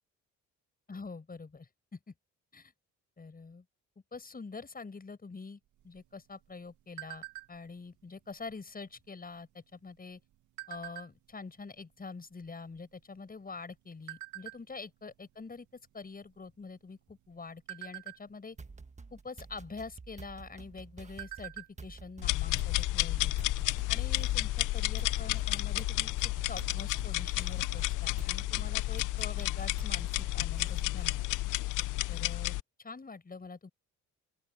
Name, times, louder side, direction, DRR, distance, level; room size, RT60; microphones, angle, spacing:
voice 1, 0.9-2.1 2.5-2.7 3.2-3.6 4.1-10.2 10.7-18.6 19.1-23.3 23.9-26.1 26.5-31.3 32.1-33.7, left 4 dB, 30° left, 7.5 m, -45 dB
sound 1, 5.8-7.8 8.3-8.5 8.8-9.2 9.9-11.4 12.0-12.1 12.3-13.6 14.1-14.6 15.1-15.3 15.7-15.9 16.3-16.8 17.3-18.7 19.8-19.9 20.3-20.4 20.8-21.8 22.1-22.2 22.6-22.7, right 19 dB, 70° right, 1.3 m, -45 dB
sound 2, 18.6-31.3, right 4 dB, 25° right, 1.4 m, -49 dB
sound 3, 22.2-32.6, left 18 dB, 85° left, 0.6 m, -31 dB
open air
cardioid pair, 90°, 30 cm